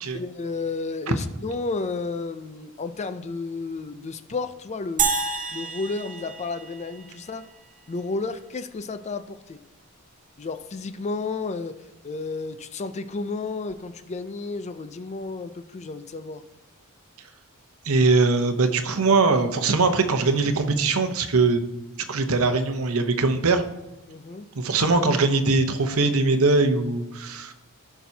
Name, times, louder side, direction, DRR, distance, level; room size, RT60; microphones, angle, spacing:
voice 1, 0.1-5.1 5.5-7.5 7.9-9.6 10.4-11.8 12.0-16.4 24.1-24.5, left 3 dB, 30° left, 11 dB, 0.4 m, -32 dB
sound 1, 5.0-7.4, right 5 dB, 40° right, 0.9 m, -28 dB
voice 2, 17.8-21.6 22.1-23.6 24.6-27.5, right 3 dB, 70° right, 8 dB, 0.8 m, -21 dB
16.0 x 6.0 x 2.8 m, 1.0 s
head